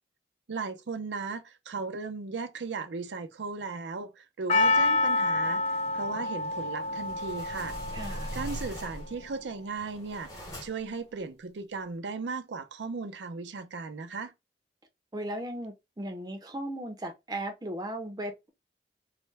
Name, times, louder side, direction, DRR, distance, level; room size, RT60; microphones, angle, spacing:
voice 1, 0.5-5.6 5.9-7.8 8.3-14.3, right 4 dB, 85° right, 0.5 m, -36 dB
Percussion, 4.5-8.9 9.1-9.2, left 2 dB, 35° left, 0.3 m, -28 dB
sound 1, 6.8-9.3 9.7-11.0, equal, 20° left, 0.9 m, -40 dB
voice 2, 7.9-8.3 15.1-18.5, right 1 dB, 20° right, 0.6 m, -37 dB
3.2 x 2.1 x 3.3 m
head